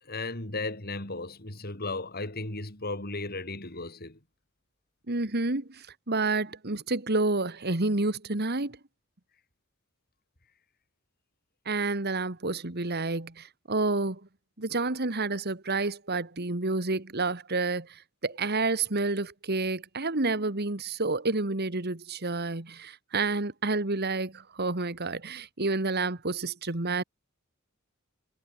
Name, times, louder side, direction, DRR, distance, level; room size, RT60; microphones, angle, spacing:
voice 1, 0.0-4.2, left 2 dB, 50° left, 5.2 m, -35 dB
voice 2, 5.1-8.8 11.7-14.2 14.6-27.0, right 3 dB, 50° right, 2.1 m, -29 dB
head